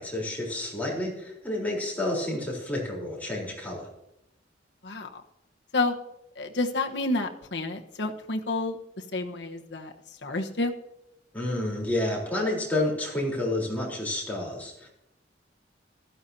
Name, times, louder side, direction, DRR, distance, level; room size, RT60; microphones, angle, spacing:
voice 1, 0.0-3.9 11.3-14.9, left 1 dB, 10° left, -3 dB, 3.8 m, -30 dB
voice 2, 4.8-5.2 5.7-5.9 6.4-8.8 9.1-9.9 10.2-10.7, left 2 dB, 70° left, 3 dB, 1.2 m, -29 dB
16.0 x 13.5 x 2.8 m, 0.85 s
head